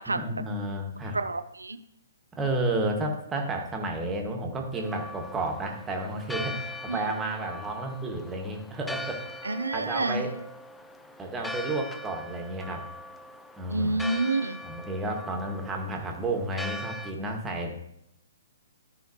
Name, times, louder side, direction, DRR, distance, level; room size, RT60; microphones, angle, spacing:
voice 1, 0.1-1.2 2.3-9.2 9.7-10.3 11.2-12.8 13.6-13.9 14.6-17.7, right 2 dB, 15° right, 2 dB, 1.6 m, -31 dB
voice 2, 1.1-1.8 6.9-7.0 9.4-10.2 13.7-14.6, right 2 dB, 85° right, 11 dB, 0.5 m, -28 dB
Church bell, 4.7-17.1, left 1 dB, 5° left, 0.5 m, -41 dB
13.0 x 5.6 x 2.9 m, 0.76 s
figure-of-eight pair, 125°, 0 cm